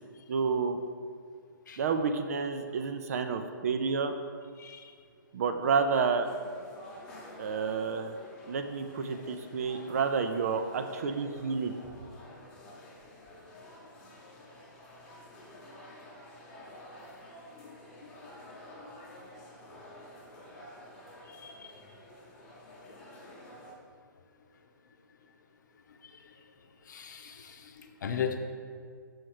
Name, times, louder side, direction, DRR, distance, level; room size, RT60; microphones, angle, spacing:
voice 1, 0.3-0.8 1.8-4.1 5.3-6.3 7.4-8.1 8.5-11.7, right 5 dB, 45° right, 8 dB, 0.6 m, -30 dB
voice 2, 4.6-4.9 17.6-18.3 18.8-18.9 21.3-21.8 26.0-26.4 26.9-28.4, left 7 dB, 60° left, 6 dB, 0.8 m, -39 dB
sound 1, 6.2-23.7, left 1 dB, 5° left, 1.1 m, -50 dB
6.4 x 4.3 x 6.5 m, 2.1 s
hypercardioid pair, 160°, 11 cm